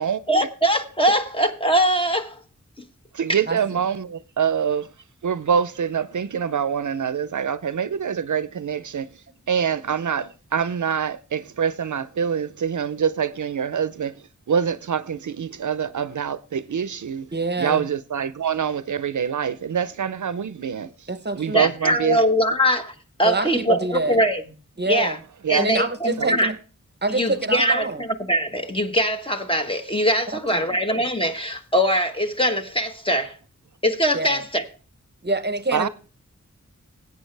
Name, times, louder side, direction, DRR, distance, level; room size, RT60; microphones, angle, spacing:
voice 1, 0.3-2.4 17.7-17.8 21.5-22.9 23.2-24.4 24.9-25.2 25.5-26.5 27.1-33.3 33.8-34.6, equal, 15° left, 1.3 m, -22 dB
voice 2, 3.1-4.9 5.2-17.3 17.6-21.1 21.4-22.2 25.4-25.7 26.2-26.4 35.7-35.9, right 7 dB, 70° right, 0.5 m, -25 dB
voice 3, 17.3-17.8 21.1-21.7 23.2-24.2 24.8-25.2 25.5-26.6 27.0-28.1 30.5-30.8 34.1-34.4 35.2-35.9, right 2 dB, 35° right, 0.9 m, -26 dB
16.5 x 8.6 x 3.3 m
wide cardioid pair, 75°, 31 cm